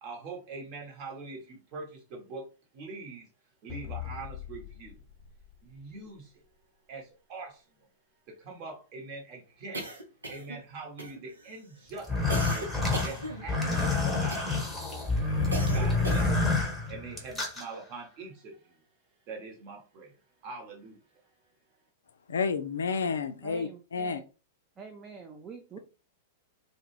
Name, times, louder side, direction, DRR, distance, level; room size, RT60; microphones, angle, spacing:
voice 1, 0.0-2.5 2.7-3.3 3.6-5.0 5.6-6.4 6.9-7.9 8.3-10.0 10.3-12.7 13.0-18.8 19.3-20.1 20.4-21.4, right 3 dB, 40° right, 1.0 m, -44 dB
sound 1, 3.7-6.4, left 12 dB, 25° left, 0.8 m, -43 dB
sound 2, 9.7-10.6 11.0-11.5 12.3-13.8 14.3-14.7 15.5-16.5, right 1 dB, 80° right, 0.7 m, -38 dB
sound 3, 12.0-17.6, left 3 dB, ahead, 1.0 m, -28 dB
voice 2, 22.3-24.2, left 5 dB, 70° left, 0.3 m, -30 dB
voice 3, 23.4-24.2 24.8-25.8, right 5 dB, 25° right, 0.4 m, -46 dB
2.2 x 2.1 x 3.1 m
figure-of-eight pair, 100°, 0 cm